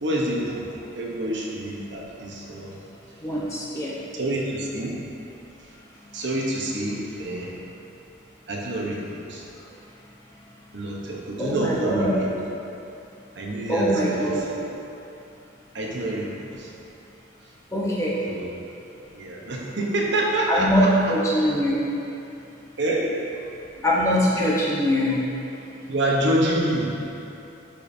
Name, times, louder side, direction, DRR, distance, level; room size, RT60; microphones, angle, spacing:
voice 1, 0.0-2.7 4.1-5.0 6.1-7.6 8.5-9.4 10.7-12.3 13.3-14.6 15.7-16.7 18.3-18.5 19.1-21.5 22.8-23.1 25.9-27.1, right 1 dB, 60° right, -3 dB, 1.0 m, -27 dB
voice 2, 3.2-3.9 11.4-12.2 13.7-14.5 17.7-18.2 20.5-21.8 23.8-25.2, equal, 15° left, -6 dB, 1.0 m, -22 dB
11.0 x 5.2 x 2.8 m, 2.8 s
head